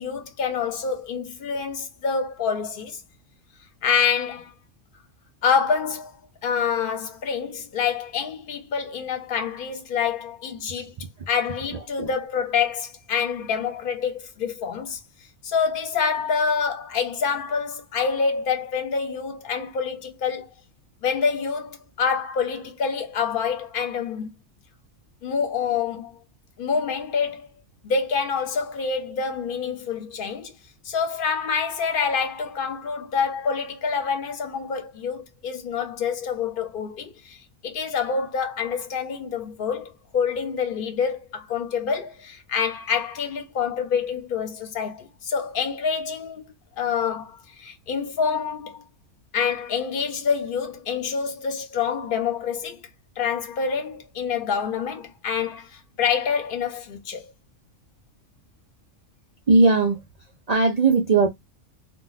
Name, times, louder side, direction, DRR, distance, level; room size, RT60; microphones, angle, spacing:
voice 1, 0.0-3.0 3.8-4.5 5.4-6.1 6.4-10.9 11.3-15.0 15.4-20.5 21.0-24.3 25.2-26.2 26.6-27.5 27.8-30.5 30.8-37.4 37.6-48.9 49.3-52.8 53.2-57.3, left 6 dB, 50° left, 0.8 m, -27 dB
voice 2, 11.7-12.1 59.5-60.0 60.5-61.3, right 3 dB, 75° right, 0.3 m, -19 dB
2.3 x 2.2 x 3.9 m
omnidirectional pair, 1.3 m